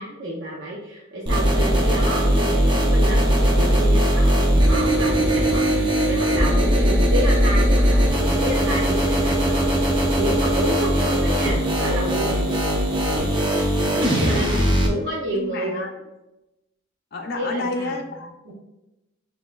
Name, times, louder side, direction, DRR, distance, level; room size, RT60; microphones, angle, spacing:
voice 1, 0.0-12.5 13.9-14.5 14.8-15.9 17.4-18.0 18.5-18.6, equal, 60° right, -4 dB, 0.6 m, -30 dB
sound 1, 1.3-14.9, equal, 25° right, 0.7 m, -19 dB
voice 2, 13.9-14.7 15.3-15.9 17.1-18.5, left 2 dB, 50° left, 1 dB, 0.5 m, -31 dB
6.3 x 2.7 x 2.3 m, 0.96 s
head